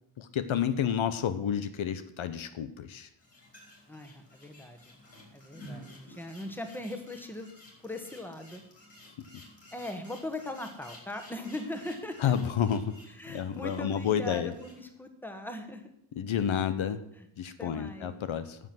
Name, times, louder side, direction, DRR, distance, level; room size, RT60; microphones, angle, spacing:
voice 1, 0.2-3.1 12.2-12.9 13.3-14.5 16.2-17.0 17.4-18.6, left 8 dB, 75° left, 11 dB, 0.9 m, -30 dB
sound 1, 3.2-14.8, left 1 dB, 30° left, 4.6 m, -53 dB
voice 2, 3.9-5.0 5.3-7.5 7.8-8.6 9.7-12.3 13.1-15.8 17.2-17.3 17.6-18.1, left 1 dB, 5° left, 6 dB, 1.4 m, -40 dB
10.0 x 7.7 x 7.8 m, 0.75 s
wide cardioid pair, 130°, 48 cm